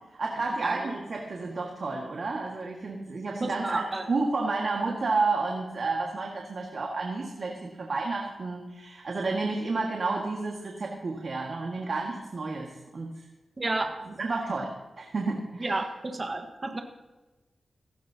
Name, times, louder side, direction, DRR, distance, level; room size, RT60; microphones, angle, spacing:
voice 1, 0.2-13.1 14.1-15.8, right 3 dB, 60° right, -1 dB, 1.8 m, -31 dB
voice 2, 3.4-4.0 13.6-14.0 15.6-16.8, right 2 dB, 35° right, 4 dB, 1.4 m, -31 dB
16.5 x 16.5 x 2.9 m, 1.1 s
cardioid pair, 75°, 0 cm